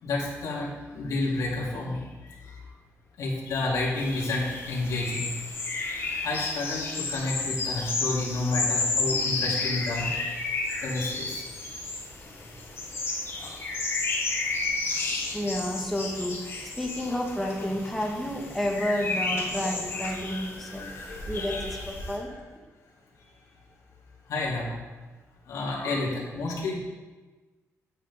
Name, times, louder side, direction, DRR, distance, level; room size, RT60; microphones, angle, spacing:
voice 1, 0.0-2.5 3.2-5.3 6.2-10.1 10.8-11.4 20.3-22.3 24.3-24.7 25.5-26.8, left 2 dB, 80° left, -5 dB, 3.1 m, -31 dB
sound 1, 4.0-22.2, left 3 dB, 45° left, 3.2 m, -32 dB
voice 2, 15.0-20.9 21.3-22.3, equal, ahead, -1 dB, 1.5 m, -31 dB
10.5 x 8.8 x 3.7 m, 1.3 s
cardioid pair, 105°, 6 cm